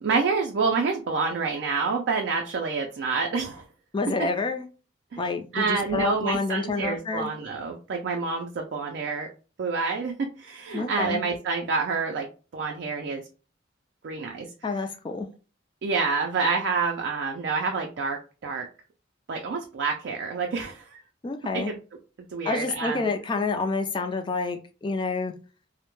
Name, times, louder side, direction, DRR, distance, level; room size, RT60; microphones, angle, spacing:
voice 1, 0.0-3.6 4.2-4.3 5.1-5.2 5.5-9.3 9.6-12.3 12.5-13.2 14.0-14.5 15.8-18.7 19.3-21.0 21.5-21.8 22.3-23.1, right 4 dB, 60° right, 2 dB, 0.4 m, -28 dB
voice 2, 3.9-4.7 5.2-7.3 10.7-11.2 14.6-15.3 21.2-21.7 22.4-25.3, left 3 dB, 25° left, 6 dB, 0.3 m, -28 dB
2.2 x 2.1 x 3.0 m, 0.35 s
head